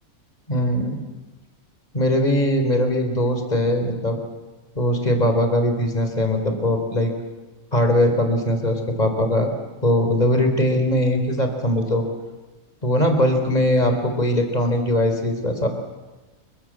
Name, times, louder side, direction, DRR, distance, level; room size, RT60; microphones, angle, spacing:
voice 1, 0.5-1.0 1.9-4.2 4.8-7.1 7.7-9.5 9.8-12.0 12.8-15.7, left 1 dB, 30° left, 6 dB, 4.1 m, -20 dB
28.5 x 24.0 x 7.7 m, 1.2 s
omnidirectional pair, 1.5 m